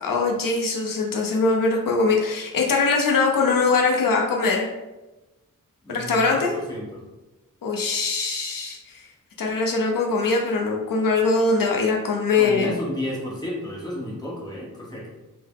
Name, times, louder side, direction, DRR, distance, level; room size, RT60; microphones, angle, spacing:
voice 1, 0.0-4.7 5.9-6.5 7.6-9.0 9.4-12.8, left 4 dB, 85° left, 1 dB, 0.6 m, -22 dB
voice 2, 5.8-7.0 12.3-15.1, left 1 dB, 10° left, -5 dB, 1.0 m, -32 dB
3.7 x 2.0 x 3.5 m, 1.1 s
wide cardioid pair, 110°, 32 cm